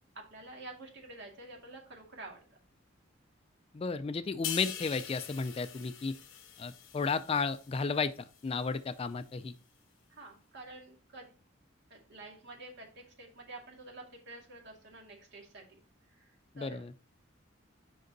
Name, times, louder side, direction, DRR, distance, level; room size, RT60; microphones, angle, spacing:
voice 1, 0.1-2.4 10.1-11.3 11.9-15.8 16.1-16.8, right 2 dB, 60° right, 0 dB, 2.2 m, -49 dB
voice 2, 3.7-6.2 6.6-9.5 16.6-16.9, left 4 dB, 30° left, 12 dB, 0.3 m, -33 dB
sound 1, 4.4-8.0 8.4-8.6, left 9 dB, 70° left, 1.2 m, -43 dB
6.5 x 5.3 x 3.9 m, 0.37 s
head